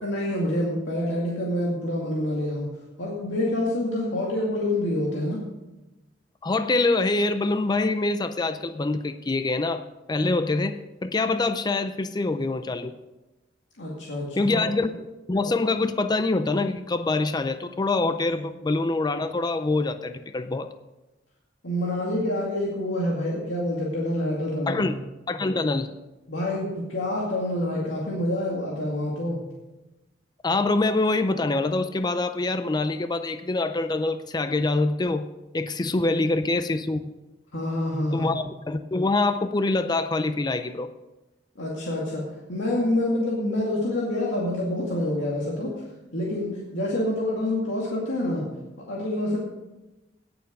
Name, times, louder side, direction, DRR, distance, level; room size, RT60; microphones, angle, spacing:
voice 1, 0.0-2.7 3.0-5.4 13.8-14.6 18.3-18.4 21.6-24.8 26.3-29.4 37.5-38.3 41.6-42.2 42.5-45.7 46.1-48.4 48.9-49.4, left 1 dB, 90° left, -4 dB, 2.3 m, -27 dB
voice 2, 6.4-12.9 14.4-20.7 24.7-25.0 25.3-25.9 30.4-35.3 35.5-37.0 38.1-40.9, left 2 dB, 20° left, 10 dB, 0.4 m, -25 dB
17.5 x 7.1 x 5.3 m, 1.0 s
head